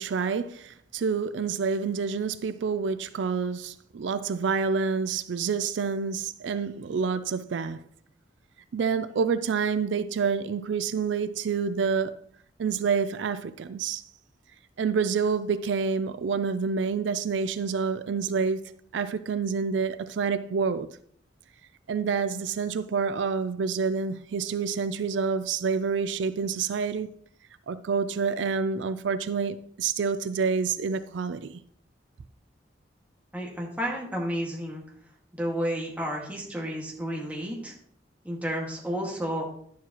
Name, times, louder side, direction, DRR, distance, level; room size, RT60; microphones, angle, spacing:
voice 1, 0.0-7.8 8.7-12.2 12.6-14.0 14.8-18.6 18.9-20.9 21.9-27.1 27.7-31.6, right 5 dB, 85° right, 0.4 m, -28 dB
voice 2, 33.3-34.8 35.3-37.7 38.2-39.5, equal, 10° right, 1.8 m, -31 dB
11.0 x 7.2 x 3.0 m
head